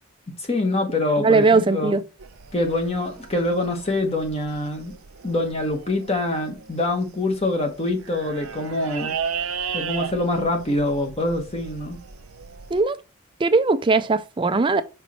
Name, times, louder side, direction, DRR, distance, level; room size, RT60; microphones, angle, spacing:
voice 1, 0.4-2.0 2.5-4.9 5.2-9.1 9.7-12.0, left 2 dB, 30° left, 1.0 m, -25 dB
voice 2, 1.2-2.0 12.7-13.0 13.4-14.8, right 3 dB, 25° right, 0.4 m, -19 dB
sound 1, 2.2-12.8, right 7 dB, 80° right, 0.6 m, -35 dB
5.3 x 4.6 x 4.1 m
head